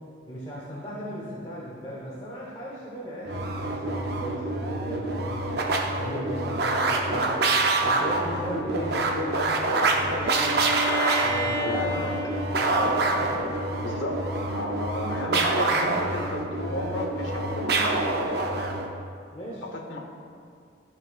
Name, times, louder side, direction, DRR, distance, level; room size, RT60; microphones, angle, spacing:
voice 1, 0.3-5.6 6.0-7.5 7.8-10.8 11.2-11.8 12.5-13.5 19.3-19.6, equal, 25° left, -7 dB, 1.1 m, -37 dB
sound 1, 3.2-18.9, right 2 dB, 55° right, 0.6 m, -26 dB
Bowed string instrument, 10.2-14.0, equal, 10° right, 0.8 m, -33 dB
voice 2, 11.6-12.2 13.8-18.0 19.6-20.0, left 1 dB, 75° left, 1 dB, 1.0 m, -33 dB
12.5 x 5.9 x 2.4 m, 2.3 s
head